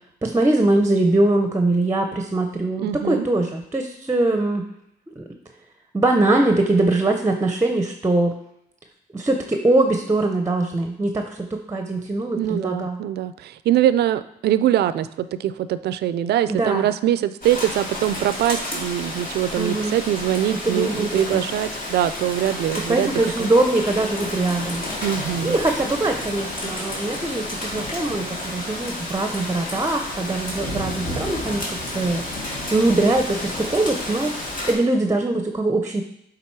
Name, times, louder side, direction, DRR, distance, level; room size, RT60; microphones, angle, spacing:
voice 1, 0.2-4.6 5.2-5.3 5.9-8.3 9.1-13.0 16.5-16.9 19.6-19.9 20.6-21.4 22.7-24.8 25.4-31.6 31.9-32.4 32.7-34.3 34.7-36.0, right 2 dB, 15° right, 5 dB, 0.7 m, -22 dB
voice 2, 2.8-3.3 12.3-23.1 23.4-23.5 25.0-25.6, right 11 dB, 70° right, 13 dB, 0.4 m, -23 dB
Rain, 17.4-34.7, left 1 dB, 50° left, 2.1 m, -31 dB
7.4 x 3.9 x 4.6 m, 0.76 s
cardioid pair, 90°, 17 cm